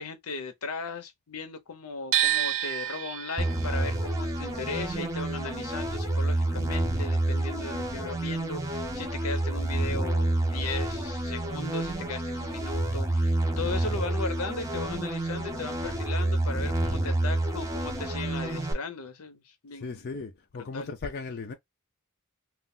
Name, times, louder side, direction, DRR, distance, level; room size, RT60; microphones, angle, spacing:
voice 1, 0.0-20.0 20.7-20.9, left 4 dB, 80° left, 0.7 m, -37 dB
sound 1, 2.1-8.1 8.4-9.7, right 12 dB, 65° right, 0.5 m, -32 dB
sound 2, 3.4-18.7, right 1 dB, 15° right, 0.6 m, -29 dB
voice 2, 19.7-21.5, left 4 dB, 45° left, 0.4 m, -37 dB
2.4 x 2.1 x 3.7 m
head